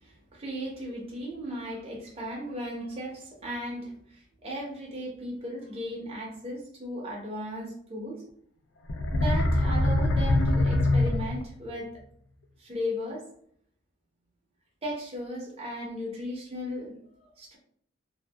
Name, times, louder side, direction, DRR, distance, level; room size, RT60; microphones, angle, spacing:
voice 1, 0.0-8.2 9.1-11.9 12.6-13.2 14.8-17.0 17.4-17.6, equal, 30° right, -3 dB, 0.6 m, -36 dB
sound 1, 8.9-11.7, left 2 dB, 75° left, 0.4 m, -24 dB
2.6 x 2.1 x 2.2 m, 0.63 s
head